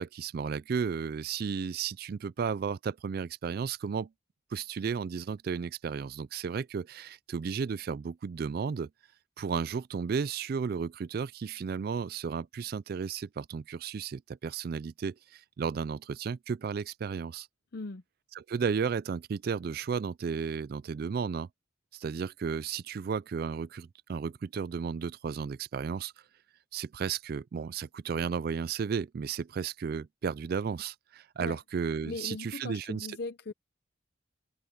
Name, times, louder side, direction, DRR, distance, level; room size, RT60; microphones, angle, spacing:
voice 1, 0.0-4.1 4.5-8.9 9.4-17.5 18.4-21.5 21.9-26.1 26.7-33.2, right 6 dB, 50° right, 0.3 m, -33 dB
voice 2, 17.7-18.0 31.4-31.6 32.0-33.5, left 3 dB, 55° left, 0.6 m, -39 dB
open air
head